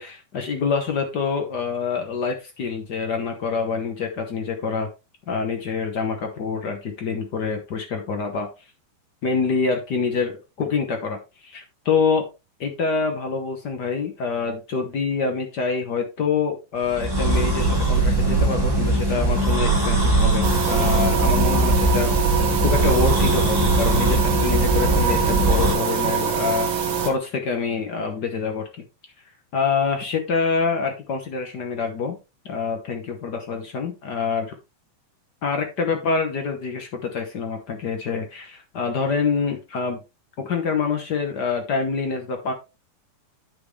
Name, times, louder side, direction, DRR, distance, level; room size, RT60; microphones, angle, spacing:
voice 1, 0.0-4.9 5.3-8.5 9.2-11.2 11.4-12.2 12.6-22.1 22.6-28.6 29.5-32.2 32.5-34.5 35.4-40.0 40.4-42.5, left 5 dB, 70° left, 4 dB, 0.9 m, -26 dB
sound 1, 16.9-25.7, right 2 dB, 5° right, 2.7 m, -20 dB
sound 2, 20.4-27.1, right 7 dB, 55° right, 1.5 m, -24 dB
9.4 x 6.1 x 3.3 m, 0.27 s
omnidirectional pair, 3.6 m